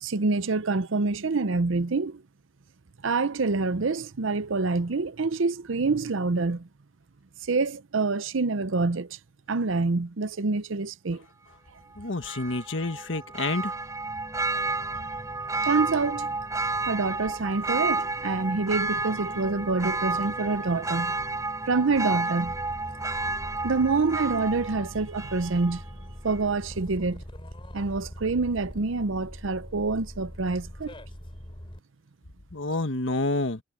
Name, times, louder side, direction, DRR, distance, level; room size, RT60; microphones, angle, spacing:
voice 1, 0.0-2.2 3.0-6.7 7.4-9.2 9.5-11.2 15.6-16.3 16.9-21.2 21.7-22.5 23.3-23.4 23.6-25.8 26.2-27.2 27.7-30.9, right 3 dB, 75° right, 0.7 m, -26 dB
voice 2, 12.0-13.7 32.5-33.6, left 2 dB, 70° left, 1.6 m, -28 dB
Church bell, 12.2-25.9 26.3-26.4, right 3 dB, 15° right, 4.5 m, -31 dB
sound 1, 22.5-31.8, equal, 30° left, 3.3 m, -42 dB
head